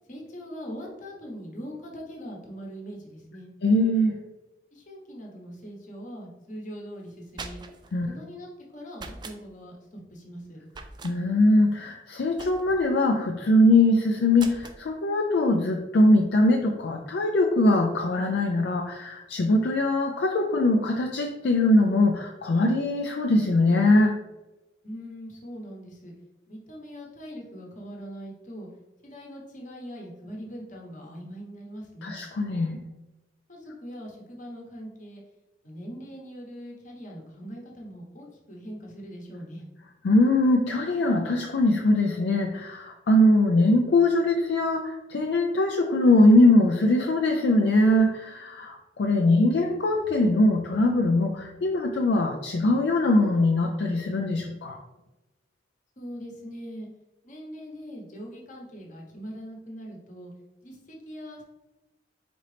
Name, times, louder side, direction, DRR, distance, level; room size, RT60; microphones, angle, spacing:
voice 1, 0.1-3.5 4.7-7.6 8.0-10.6 24.8-26.1 26.5-28.7 29.0-32.2 33.5-35.2 35.6-39.7 56.0-56.9 57.2-60.3 60.6-61.4, equal, 45° left, -1 dB, 1.0 m, -41 dB
voice 2, 3.6-4.2 7.9-8.1 11.0-24.2 32.0-32.8 40.0-54.8, left 1 dB, 65° left, 2 dB, 0.4 m, -22 dB
sound 1, 7.1-7.9 8.9-9.4 10.7-11.2 12.4-12.9 14.4-14.8, right 3 dB, 25° right, 0.3 m, -41 dB
4.3 x 3.8 x 3.3 m, 1.1 s
head